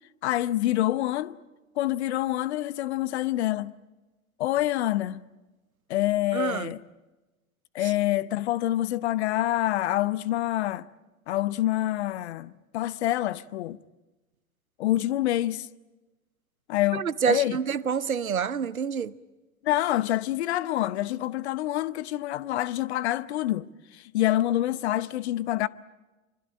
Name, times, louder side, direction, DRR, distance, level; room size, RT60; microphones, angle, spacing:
voice 1, 0.2-1.4 1.8-3.7 4.4-5.2 5.9-6.8 7.7-10.8 11.3-13.8 14.8-15.7 16.7-17.6 19.6-23.7 23.9-25.7, left 14 dB, 50° left, 0.8 m, -26 dB
voice 2, 6.3-6.7 16.9-19.1, right 7 dB, 80° right, 0.9 m, -27 dB
25.5 x 24.5 x 8.8 m
figure-of-eight pair, 90°, 42 cm